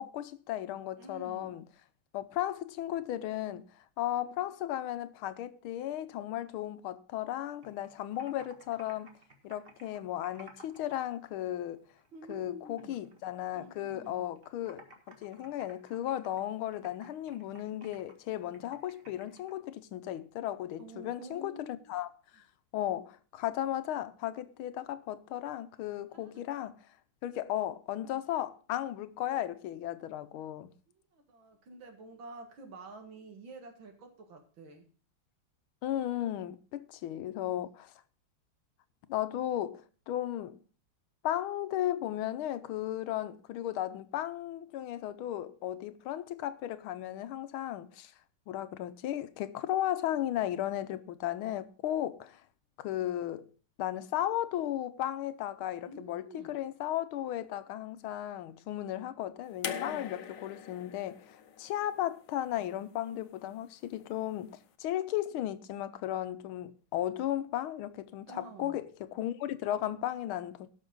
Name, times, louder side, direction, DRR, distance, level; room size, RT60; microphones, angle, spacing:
voice 1, 0.0-1.6 2.1-9.1 9.4-11.8 12.3-22.4 22.7-26.8 27.2-30.7 35.8-37.9 39.1-40.6 41.2-48.1 48.5-52.4 52.8-53.5 53.8-70.7, left 12 dB, 80° left, 1.5 m, -35 dB
voice 2, 1.0-1.6 12.1-13.0 13.5-14.3 20.8-22.0 26.1-26.4 30.3-30.5 31.1-34.9 37.3-37.7 55.8-56.6 59.7-60.1 68.3-68.8, right 2 dB, 65° right, 2.5 m, -49 dB
Computer keyboard, 7.4-11.0 11.2-12.5 12.8-14.1 14.4-19.5, right 2 dB, 30° right, 1.7 m, -56 dB
sound 1, 59.6-62.8 64.0-64.1, left 8 dB, 65° left, 1.4 m, -42 dB
17.5 x 6.2 x 3.8 m
omnidirectional pair, 2.3 m